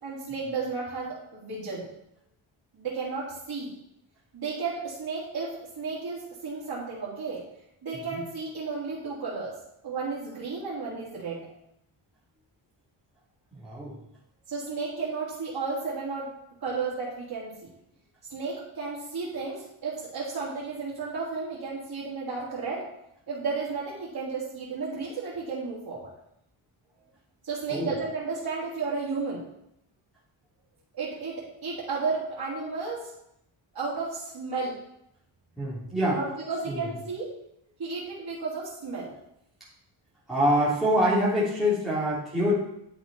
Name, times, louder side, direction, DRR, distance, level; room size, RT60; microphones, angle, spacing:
voice 1, 0.0-1.9 2.7-3.7 4.3-7.4 7.8-9.5 9.8-11.5 14.5-16.3 16.6-17.5 18.3-22.8 23.3-26.1 27.4-29.4 30.9-33.1 33.7-34.8 36.1-37.3 37.8-39.1, right 4 dB, 45° right, -8 dB, 3.2 m, -33 dB
voice 2, 13.5-14.0 27.7-27.9 35.6-36.2 36.6-36.9 40.3-42.5, equal, ahead, -9 dB, 3.2 m, -25 dB
10.5 x 6.0 x 5.5 m, 0.79 s
wide cardioid pair, 110°, 49 cm